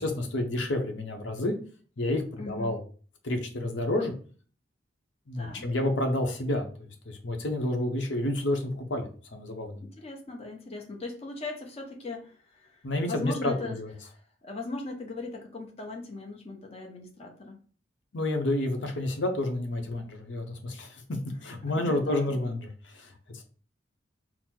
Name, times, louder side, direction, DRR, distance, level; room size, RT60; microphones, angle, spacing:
voice 1, 0.0-1.6 2.0-2.8 3.2-4.1 5.3-9.8 12.8-13.9 18.1-23.5, left 1 dB, 70° left, 4 dB, 0.8 m, -30 dB
voice 2, 2.4-2.8 5.4-5.7 9.8-17.6 20.3-20.4 21.6-22.5, left 3 dB, 35° left, 1 dB, 0.8 m, -39 dB
4.0 x 2.0 x 4.4 m, 0.41 s
head